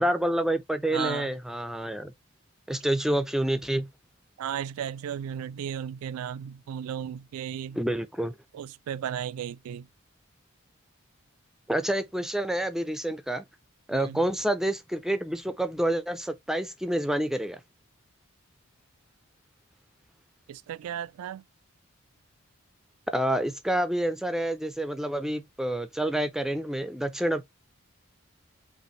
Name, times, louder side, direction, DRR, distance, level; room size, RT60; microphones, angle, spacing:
voice 1, 0.0-2.1 2.7-3.9 7.7-8.3 11.7-13.4 13.9-17.6 23.1-27.4, right 1 dB, ahead, 0.3 m, -28 dB
voice 2, 0.9-1.3 4.4-7.8 8.5-9.9 13.9-14.2 20.5-21.4, right 9 dB, 90° right, 0.3 m, -35 dB
5.4 x 2.5 x 3.0 m
head